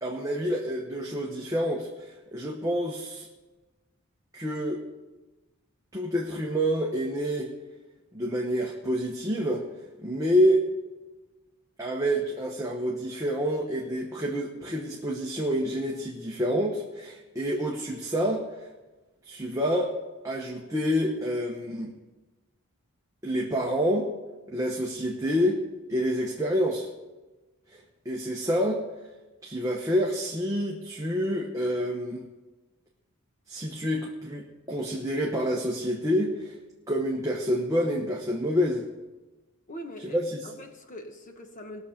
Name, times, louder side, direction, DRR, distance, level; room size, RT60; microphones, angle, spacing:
voice 1, 0.0-3.3 4.3-4.8 5.9-7.5 8.1-9.6 10.0-10.6 11.8-18.4 19.2-19.9 20.2-21.9 23.2-24.1 24.5-25.6 25.9-26.9 28.0-28.8 29.4-32.3 33.5-36.6 36.9-38.8 40.0-40.5, equal, 15° right, 1.1 m, -28 dB
voice 2, 39.7-41.8, equal, 35° left, 1.3 m, -42 dB
19.5 x 7.1 x 5.1 m
head